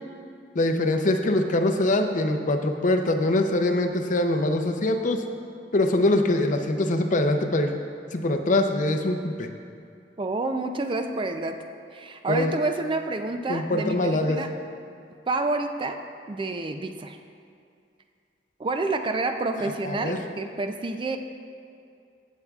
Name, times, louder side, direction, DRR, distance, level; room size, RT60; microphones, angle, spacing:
voice 1, 0.5-5.2 5.7-7.7 8.1-9.5 12.3-12.5 13.5-14.4 19.8-20.2, left 2 dB, 45° left, 6 dB, 0.6 m, -23 dB
voice 2, 10.2-11.6 11.9-14.5 15.3-16.0 16.3-17.2 18.6-21.2, right 2 dB, 30° right, 6 dB, 0.4 m, -28 dB
15.5 x 7.1 x 2.4 m, 2.4 s
head